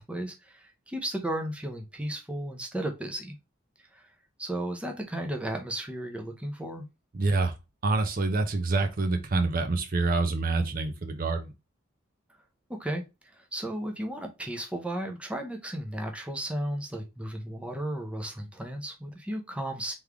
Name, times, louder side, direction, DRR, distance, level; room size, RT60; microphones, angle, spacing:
voice 1, 0.0-3.3 3.9-4.1 4.4-6.8 12.7-13.0 13.3-19.9, right 1 dB, 5° right, 0.7 m, -34 dB
voice 2, 7.1-7.5 7.8-11.5, right 3 dB, 45° right, 0.6 m, -26 dB
3.6 x 3.2 x 3.4 m
head